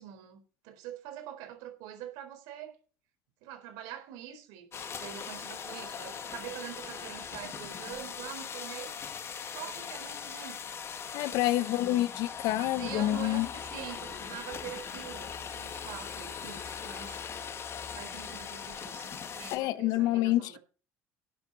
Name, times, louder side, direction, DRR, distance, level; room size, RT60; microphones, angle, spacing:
voice 1, 0.0-2.8 3.4-8.9 9.4-10.8 11.4-11.8 12.6-17.2 17.9-20.6, right 11 dB, 80° right, 4.1 m, -45 dB
sound 1, 4.7-19.6, left 7 dB, 45° left, 2.0 m, -40 dB
voice 2, 11.1-13.5 19.5-20.6, left 15 dB, 75° left, 1.1 m, -28 dB
12.0 x 10.5 x 4.2 m
supercardioid pair, 95°, 6 cm